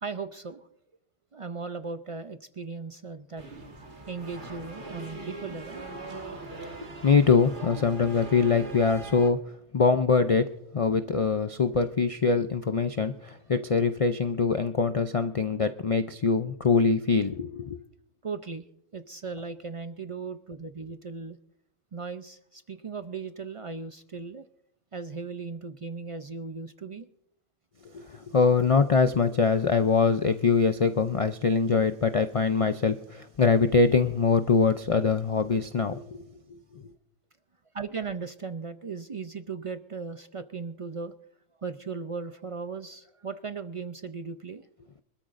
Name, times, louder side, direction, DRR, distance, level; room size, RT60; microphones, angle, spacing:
voice 1, 0.0-0.7 1.3-3.5 4.1-5.8 16.7-16.8 18.2-18.7 18.9-21.4 21.9-24.4 24.9-27.1 37.7-41.1 41.6-44.7, right 4 dB, 55° right, 10 dB, 0.3 m, -37 dB
sound 1, 3.4-9.3, right 2 dB, 40° right, 1.7 m, -41 dB
voice 2, 7.0-9.4 9.7-10.5 10.7-17.8 27.9-36.2, left 5 dB, 60° left, 9 dB, 0.3 m, -23 dB
25.0 x 13.0 x 2.5 m, 0.78 s
omnidirectional pair, 1.3 m